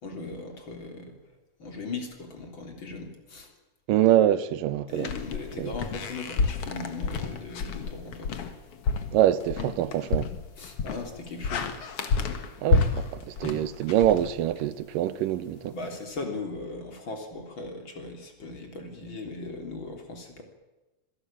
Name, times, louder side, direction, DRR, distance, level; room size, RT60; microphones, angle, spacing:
voice 1, 0.0-1.2 1.6-3.5 4.9-8.3 10.6-11.8 15.7-20.4, left 3 dB, 35° left, 3.9 m, -38 dB
voice 2, 3.9-5.1 5.6-5.7 9.1-10.3 12.6-15.8, right 12 dB, 90° right, 2.6 m, -25 dB
sound 1, 5.0-14.8, left 4 dB, 50° left, 2.4 m, -30 dB
25.5 x 17.5 x 8.8 m
omnidirectional pair, 3.8 m